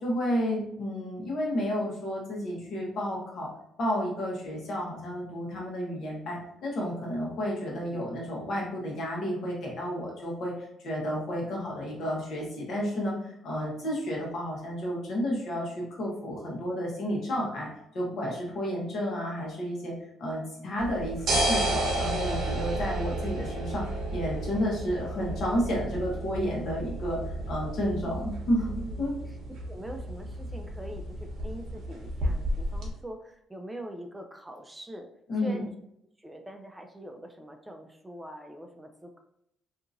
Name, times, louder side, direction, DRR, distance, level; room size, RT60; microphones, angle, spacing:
voice 1, 0.0-3.5 3.8-10.5 10.8-17.7 17.9-19.9 20.2-23.8 24.1-27.2 27.5-28.7 29.0-29.1 35.3-35.6, equal, 60° left, -2 dB, 1.1 m, -31 dB
sound 1, 20.8-32.9, right 1 dB, 65° right, 0.8 m, -32 dB
voice 2, 28.8-29.4 29.7-35.1 35.4-35.7 36.2-39.2, right 1 dB, 10° right, 4 dB, 0.3 m, -43 dB
2.8 x 2.5 x 2.6 m, 0.77 s
cardioid pair, 90°, 0 cm